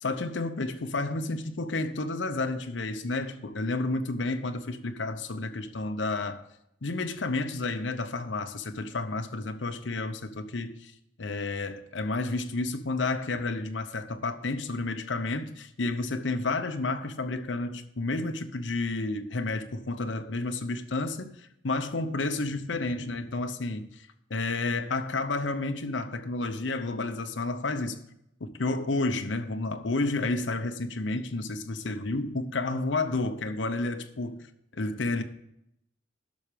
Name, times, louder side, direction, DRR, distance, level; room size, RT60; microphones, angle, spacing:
voice 1, 0.0-6.4 6.8-10.9 11.2-28.0 28.4-34.4 34.7-35.2, left 2 dB, 80° left, 0.8 m, -31 dB
12.0 x 6.4 x 5.0 m
head